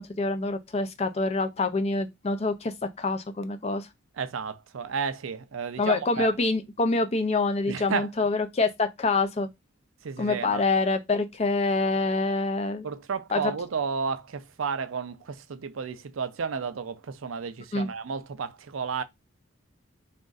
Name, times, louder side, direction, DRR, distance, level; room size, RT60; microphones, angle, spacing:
voice 1, 0.0-3.9 5.8-9.5 10.2-12.9 13.3-13.5 17.7-17.9, left 3 dB, 30° left, 0.5 m, -26 dB
voice 2, 4.2-6.3 7.7-8.1 10.0-10.6 12.8-19.0, right 5 dB, 80° right, 0.5 m, -32 dB
3.5 x 2.5 x 3.9 m
head